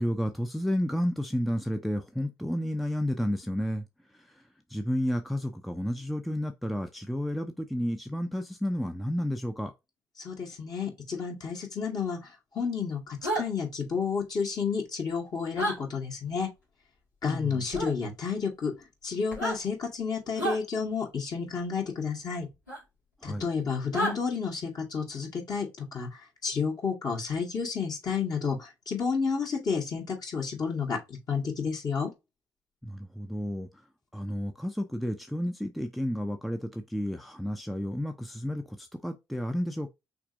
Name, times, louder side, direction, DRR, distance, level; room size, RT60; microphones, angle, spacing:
voice 1, 0.0-3.9 4.7-9.7 17.2-17.6 23.2-23.4 32.8-33.7 34.1-39.9, equal, ahead, 0.6 m, -31 dB
voice 2, 10.2-12.2 12.5-16.5 17.2-18.7 19.0-22.5 23.2-32.1, left 5 dB, 45° left, 2.0 m, -31 dB
sound 1, 13.2-13.4 15.5-15.8 17.7-17.9 19.3-19.6 20.4-20.6 22.7-22.8 23.9-24.1, right 1 dB, 85° left, 2.0 m, -29 dB
5.9 x 3.4 x 2.6 m
figure-of-eight pair, 40°, 9 cm